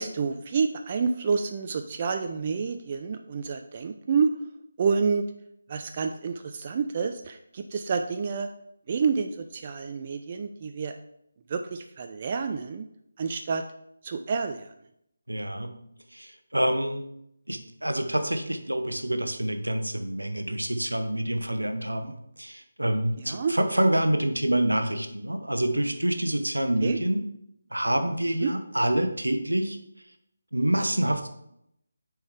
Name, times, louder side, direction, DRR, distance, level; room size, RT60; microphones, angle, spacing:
voice 1, 0.0-4.3 4.8-5.2 5.7-8.5 8.9-10.9 11.5-12.9 13.2-13.6 14.0-14.7 23.3-23.5 26.8-27.0 28.4-28.5, right 5 dB, 30° right, 6 dB, 0.3 m, -28 dB
voice 2, 15.3-15.7 16.1-17.1 17.5-27.2 27.7-29.8 30.5-31.3, right 1 dB, 80° right, 7 dB, 0.8 m, -27 dB
6.2 x 4.6 x 3.6 m, 0.76 s
figure-of-eight pair, 155°, 0 cm